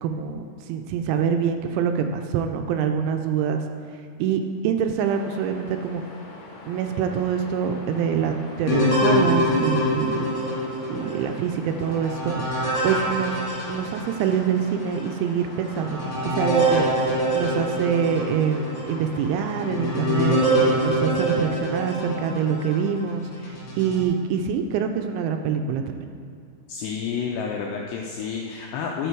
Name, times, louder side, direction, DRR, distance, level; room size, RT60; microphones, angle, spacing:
voice 1, 0.0-3.6 4.2-6.0 6.7-10.3 10.9-12.4 12.8-13.4 13.7-20.4 20.8-23.3 23.8-26.1, right 7 dB, 85° right, 6 dB, 2.8 m, -25 dB
sound 1, 5.0-20.8, left 2 dB, 65° left, 1.8 m, -43 dB
sound 2, 8.7-14.4 15.0-15.1 15.6-22.8 23.4-24.0, equal, 45° left, 2.3 m, -25 dB
voice 2, 26.7-29.1, left 6 dB, 85° left, -1 dB, 2.4 m, -29 dB
11.5 x 6.9 x 4.6 m, 2.3 s
omnidirectional pair, 5.5 m